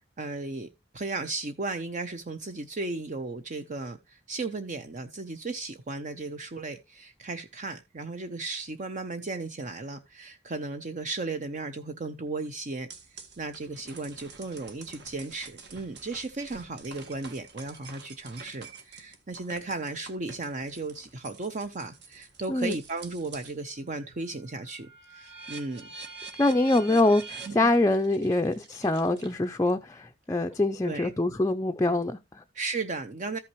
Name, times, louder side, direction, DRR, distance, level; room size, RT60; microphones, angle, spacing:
voice 1, 0.2-0.7 0.9-12.9 13.4-25.9 26.9-27.0 27.5-27.7 30.8-31.1 32.5-33.4, right 3 dB, 40° right, 0.7 m, -35 dB
sound 1, 12.9-23.6 24.0-29.7, right 4 dB, 60° right, 1.6 m, -47 dB
voice 2, 26.4-32.4, left 2 dB, 15° left, 0.5 m, -24 dB
13.5 x 5.8 x 3.0 m
head